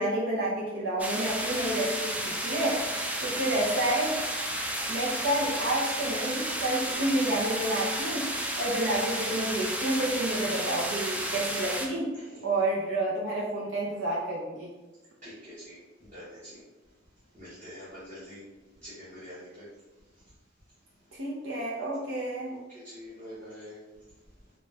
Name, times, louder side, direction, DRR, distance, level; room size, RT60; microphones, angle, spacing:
voice 1, 0.0-4.2 4.9-8.3 8.6-12.1 12.4-14.7 21.1-22.5, right 1 dB, 80° right, -5 dB, 0.6 m, -29 dB
sound 1, 1.0-11.9, right 1 dB, 10° right, 0.3 m, -32 dB
voice 2, 15.2-15.8 16.1-16.6 17.3-18.4 18.8-19.7 22.7-23.8, equal, 40° right, -11 dB, 1.1 m, -45 dB
3.9 x 2.2 x 3.3 m, 1.2 s
head